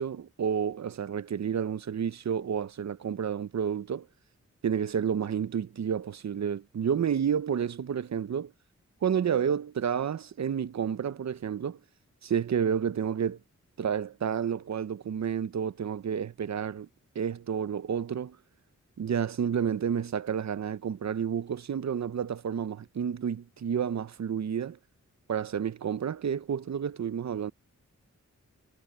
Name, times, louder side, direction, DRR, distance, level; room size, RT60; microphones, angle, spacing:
voice 1, 0.0-4.1 4.6-8.5 9.0-11.8 12.2-13.4 13.8-16.9 17.1-18.4 19.0-24.8 25.3-27.5, right 8 dB, 65° right, 0.7 m, -30 dB
wide cardioid pair, 100°, 30 cm